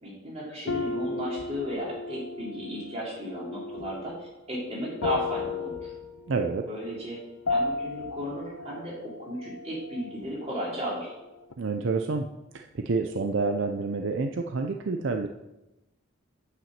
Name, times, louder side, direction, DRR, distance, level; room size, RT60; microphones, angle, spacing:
voice 1, 0.0-5.9 6.6-7.2 7.5-11.1, equal, 30° right, -5 dB, 3.5 m, -34 dB
sound 1, 0.7-10.6 10.8-11.5, left 3 dB, 90° left, 0.8 m, -35 dB
voice 2, 6.3-6.6 11.6-12.3 12.5-15.3, right 4 dB, 60° right, 4 dB, 0.5 m, -28 dB
8.1 x 5.9 x 7.3 m, 0.98 s
head